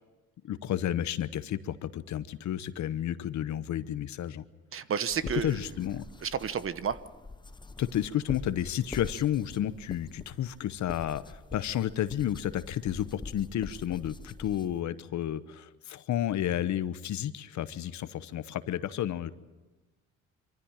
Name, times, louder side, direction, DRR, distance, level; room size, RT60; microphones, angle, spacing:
voice 1, 0.4-4.4 5.3-6.0 7.8-19.3, left 11 dB, 70° left, 14 dB, 1.0 m, -31 dB
voice 2, 4.7-5.5 6.2-7.0, right 7 dB, 45° right, 14 dB, 1.0 m, -31 dB
sound 1, 5.1-14.8, left 3 dB, 15° left, 0.8 m, -45 dB
24.0 x 14.5 x 9.0 m, 1.2 s
cardioid pair, 90°, 30 cm